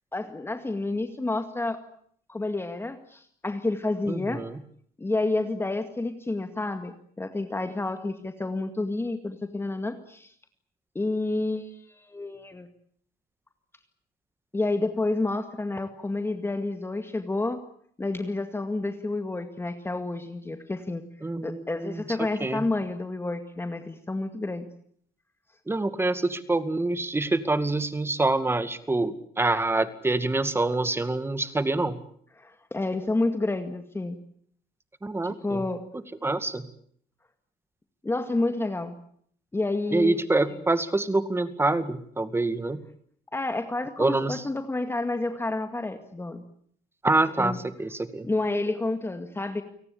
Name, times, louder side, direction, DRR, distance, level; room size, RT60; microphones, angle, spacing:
voice 1, 0.1-1.8 2.3-4.4 5.0-10.3 11.0-12.7 14.5-17.6 18.0-21.0 21.4-24.7 32.4-34.2 35.2-35.8 38.0-38.9 39.5-40.2 40.5-40.6 43.3-46.4 47.4-47.6 48.2-49.6, left 2 dB, 15° left, 7 dB, 2.1 m, -29 dB
voice 2, 4.1-4.6 21.2-22.0 22.4-22.6 25.7-32.0 35.0-35.6 36.2-36.6 39.9-42.8 44.0-44.4 47.0-48.3, right 2 dB, 15° right, 12 dB, 2.2 m, -26 dB
29.5 x 18.5 x 8.6 m, 0.64 s
cardioid pair, 110°, 17 cm